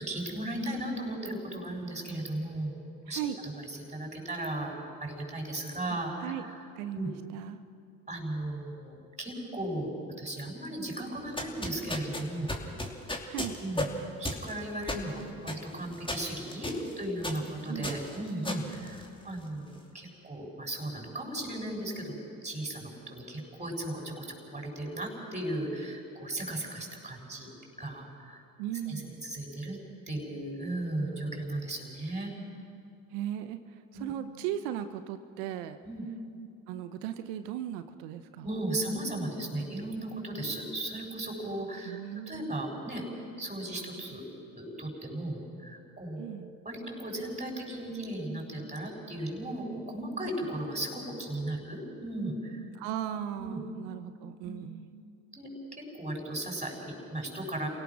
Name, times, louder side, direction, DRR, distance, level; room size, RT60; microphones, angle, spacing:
voice 1, 0.0-2.8 3.0-4.7 5.0-6.3 6.9-7.1 8.1-9.9 10.2-12.5 13.6-13.9 14.2-27.5 27.8-28.4 28.9-29.8 30.1-32.3 33.9-34.1 35.8-36.0 38.4-42.0 42.3-43.0 43.4-44.2 44.5-46.3 46.6-52.6 53.4-53.6 54.4-54.7 55.3-57.7, right 1 dB, 15° right, 0 dB, 6.9 m, -36 dB
voice 2, 3.1-3.4 6.2-6.4 6.7-7.6 13.3-13.6 17.7-18.0 28.6-29.2 33.1-35.8 36.7-38.4 41.8-42.6 46.2-46.6 52.7-54.9, right 11 dB, 75° right, 10 dB, 1.1 m, -37 dB
sound 1, 11.2-19.6, left 1 dB, 10° left, 2.9 m, -37 dB
28.5 x 17.5 x 6.2 m, 2.4 s
hypercardioid pair, 65°, 45 cm